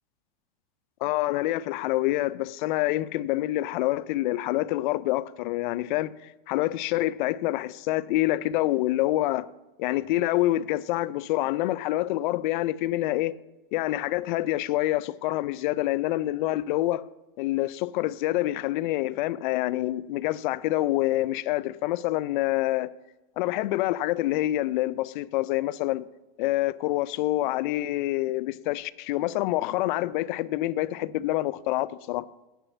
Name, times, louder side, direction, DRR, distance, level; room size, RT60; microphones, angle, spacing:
voice 1, 1.0-9.5 9.8-13.4 13.7-17.0 17.4-22.9 23.4-26.1 26.4-32.2, left 16 dB, 55° left, 0.5 m, -27 dB
7.6 x 6.8 x 7.2 m
hypercardioid pair, 125°, 29 cm